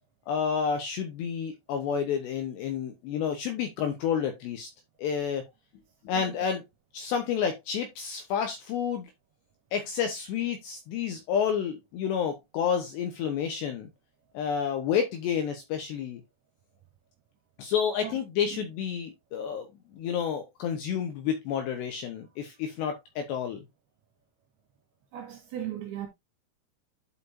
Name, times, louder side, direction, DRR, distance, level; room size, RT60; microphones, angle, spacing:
voice 1, 0.3-4.7 5.0-5.4 6.0-6.6 6.9-9.1 9.7-13.9 14.3-16.2 17.6-23.6, left 7 dB, 75° left, 2.7 m, -30 dB
voice 2, 25.1-26.1, right 11 dB, 65° right, 3.0 m, -37 dB
11.5 x 5.0 x 2.7 m
omnidirectional pair, 5.9 m